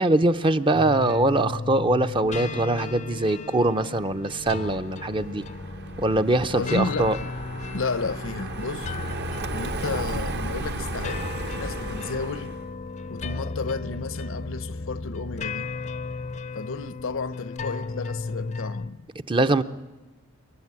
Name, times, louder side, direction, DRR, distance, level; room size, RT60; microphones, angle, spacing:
voice 1, 0.0-5.4 6.0-7.2 19.3-19.6, right 2 dB, 25° right, 0.7 m, -22 dB
sound 1, 0.7-18.9, left 3 dB, 35° left, 0.6 m, -35 dB
Car passing by, 4.1-12.7, right 2 dB, 50° right, 1.2 m, -35 dB
voice 2, 6.5-7.1 7.7-8.9 9.5-12.6 13.1-15.7 16.5-19.1, left 4 dB, 65° left, 0.8 m, -32 dB
27.5 x 12.0 x 9.7 m
head